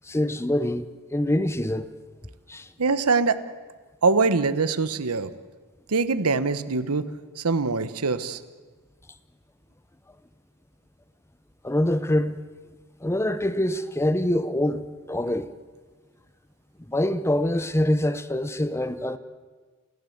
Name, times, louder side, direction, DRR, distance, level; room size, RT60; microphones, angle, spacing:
voice 1, 0.0-1.9 2.5-2.7 11.6-12.4 13.0-15.5 16.9-19.2, left 1 dB, 10° left, 0.8 m, -25 dB
voice 2, 2.8-3.4 4.0-5.3 5.9-7.1 7.4-8.4, right 4 dB, 80° right, 1.1 m, -23 dB
29.0 x 16.0 x 7.9 m
head